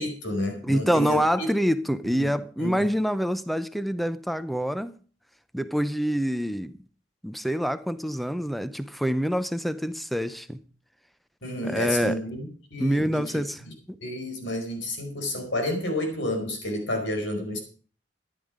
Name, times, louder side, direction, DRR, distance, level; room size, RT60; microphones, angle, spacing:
voice 1, 0.0-1.5 2.1-2.3 2.6-2.9 11.4-13.4 14.0-17.6, left 1 dB, 90° left, 4.9 m, -30 dB
voice 2, 0.6-5.0 5.5-6.8 7.2-10.6 11.6-12.2 12.8-13.6 13.9-14.0, equal, ahead, 0.6 m, -26 dB
14.0 x 10.5 x 5.1 m
head